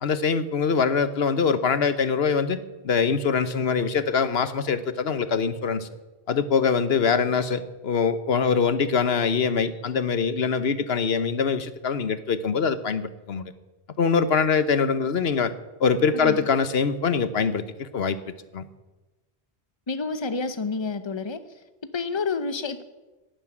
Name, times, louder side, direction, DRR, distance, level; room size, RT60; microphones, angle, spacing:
voice 1, 0.0-2.6 2.8-5.9 6.3-13.5 14.0-15.5 15.8-18.2 18.5-18.7, left 5 dB, 75° left, 13 dB, 1.2 m, -23 dB
voice 2, 19.9-21.4 21.9-22.8, left 4 dB, 30° left, 11 dB, 0.9 m, -29 dB
12.0 x 11.5 x 9.8 m, 1.1 s
omnidirectional pair, 1.0 m